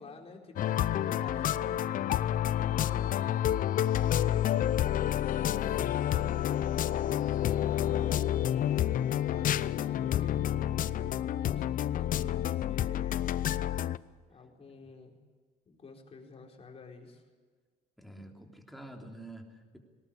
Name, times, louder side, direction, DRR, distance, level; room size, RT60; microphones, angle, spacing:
voice 1, 0.0-2.0 2.4-3.4 4.1-10.5 11.2-13.7 14.3-15.2 15.7-17.2, left 4 dB, 35° left, 1 dB, 4.3 m, -51 dB
sound 1, 0.6-14.0, left 11 dB, 55° left, 0.6 m, -29 dB
voice 2, 18.0-19.8, right 1 dB, ahead, 2 dB, 3.4 m, -48 dB
19.0 x 18.5 x 8.6 m, 1.5 s
cardioid pair, 110°, 17 cm